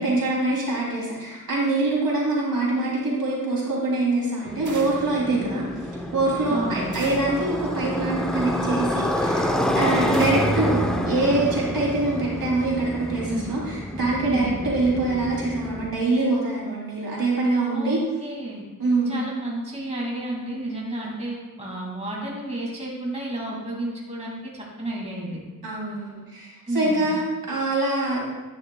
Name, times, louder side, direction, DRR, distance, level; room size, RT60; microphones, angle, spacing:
voice 1, 0.0-5.6 6.1-18.0 18.8-19.1 25.6-28.2, right 2 dB, 75° right, -4 dB, 2.9 m, -24 dB
Motorcycle, 4.5-15.9, left 1 dB, ahead, 0.7 m, -27 dB
sound 1, 4.7-5.2 6.9-7.5 10.1-10.6, right 3 dB, 60° right, 1.3 m, -39 dB
voice 2, 6.5-6.9 13.2-13.5 14.3-14.5 17.7-18.6 19.1-25.4 26.7-27.1, right 1 dB, 20° right, -4 dB, 2.3 m, -32 dB
11.0 x 9.6 x 2.3 m, 1.2 s
wide cardioid pair, 105°, 34 cm